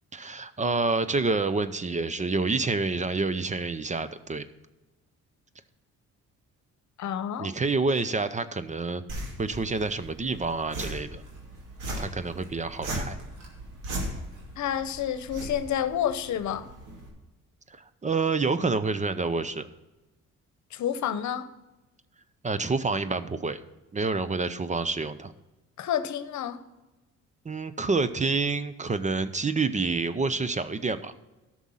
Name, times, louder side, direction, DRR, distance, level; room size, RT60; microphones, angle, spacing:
voice 1, 0.1-4.4 7.4-9.0 9.4-11.2 12.0-13.2 17.7-19.7 22.4-23.6 23.9-25.3 27.4-31.1, right 3 dB, 25° right, 13 dB, 0.6 m, -28 dB
voice 2, 7.0-7.5 14.6-16.7 20.7-21.5 25.8-26.6, left 9 dB, 70° left, 13 dB, 0.9 m, -29 dB
sound 1, 9.1-17.1, right 1 dB, 90° right, 2.5 m, -38 dB
11.5 x 6.3 x 5.5 m, 1.1 s
cardioid pair, 90°, 30 cm